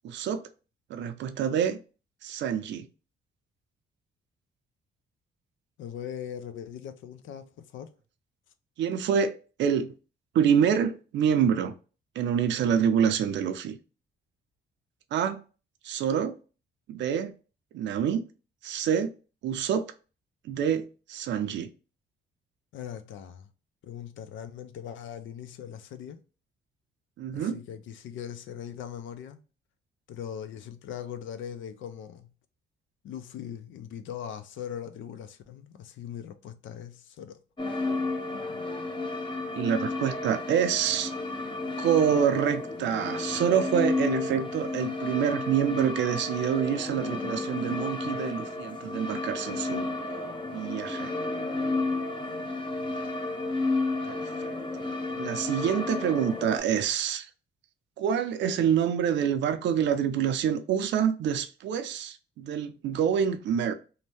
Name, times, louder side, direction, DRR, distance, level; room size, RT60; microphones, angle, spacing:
voice 1, 0.0-0.5 0.9-1.8 2.2-2.9 8.8-9.9 10.3-11.7 12.2-13.8 15.1-15.4 15.8-16.4 16.9-17.3 17.7-18.3 18.6-19.1 19.4-19.9 20.4-21.7 27.2-27.6 39.5-41.1 41.8-49.9 50.5-51.1 54.1-54.5 55.2-57.3 58.0-63.7, right 8 dB, 65° right, 0.5 m, -27 dB
voice 2, 5.8-7.9 22.7-23.5 23.8-26.2 27.3-29.4 30.1-32.3 33.0-37.4, left 9 dB, 75° left, 0.5 m, -40 dB
sound 1, 37.6-56.6, left 2 dB, 25° left, 0.6 m, -32 dB
2.7 x 2.1 x 3.2 m
cardioid pair, 90°, 20 cm